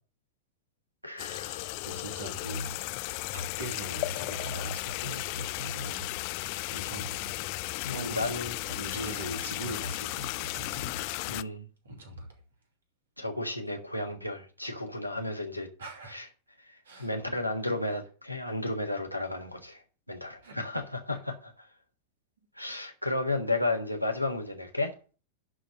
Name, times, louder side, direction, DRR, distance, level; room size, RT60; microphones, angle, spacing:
voice 1, 1.0-1.7 7.8-8.6 11.3-11.7 13.2-15.7 16.1-16.2 16.7-19.8 20.1-21.7 22.6-24.9, left 2 dB, 90° left, 1.5 m, -33 dB
sound 1, 1.2-11.4, left 22 dB, 45° left, 0.4 m, -35 dB
voice 2, 1.9-2.8 3.3-6.1 6.7-7.3 7.8-11.0 11.8-12.3 15.8-16.2 16.8-17.1 20.4-20.6 21.1-21.2, right 1 dB, 65° right, 2.7 m, -40 dB
11.0 x 3.8 x 7.4 m
figure-of-eight pair, 90°, 0 cm